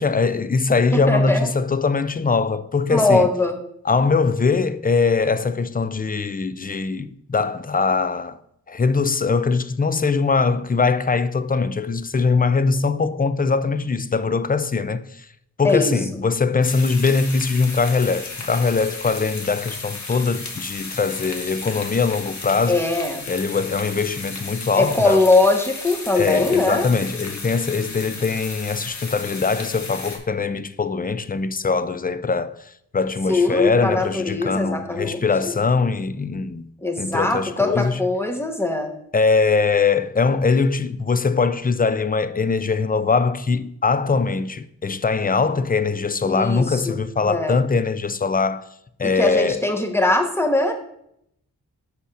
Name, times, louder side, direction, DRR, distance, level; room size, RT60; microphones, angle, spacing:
voice 1, 0.0-3.3 3.8-8.4 8.7-15.3 15.6-22.8 23.3-25.2 26.1-36.7 37.0-38.0 39.1-48.7 49.0-49.6, left 4 dB, 25° left, 0.5 m, -21 dB
voice 2, 0.9-1.5 2.9-3.6 15.6-15.9 22.7-23.2 24.8-26.9 33.3-35.5 36.8-38.9 46.2-47.0 47.2-47.6 49.0-50.7, left 2 dB, 5° left, 1.4 m, -21 dB
sound 1, 16.6-30.2, left 3 dB, 50° left, 1.7 m, -34 dB
6.5 x 5.4 x 5.0 m
cardioid pair, 60°, 36 cm